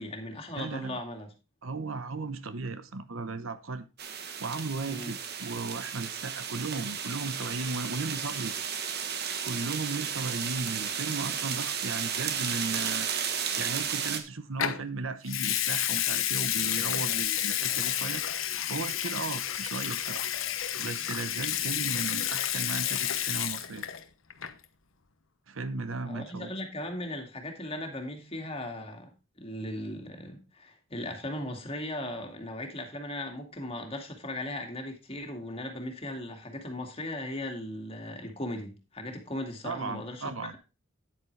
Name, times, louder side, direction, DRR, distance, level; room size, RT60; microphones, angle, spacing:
voice 1, 0.0-1.3 4.9-5.1 26.0-29.1 29.4-40.6, left 1 dB, 30° left, 2.3 m, -38 dB
voice 2, 0.5-1.0 1.6-3.8 4.4-8.5 9.4-13.1 13.6-18.2 18.7-20.3 20.8-23.9 25.5-26.5 39.6-40.6, right 3 dB, 75° right, 0.9 m, -36 dB
sound 1, 4.0-14.2, right 7 dB, 50° right, 1.2 m, -33 dB
Water tap faucet / Sink (filling or washing) / Liquid, 14.6-14.8 15.3-24.0 24.3-24.6, left 11 dB, 70° left, 1.0 m, -30 dB
9.8 x 8.8 x 3.3 m
head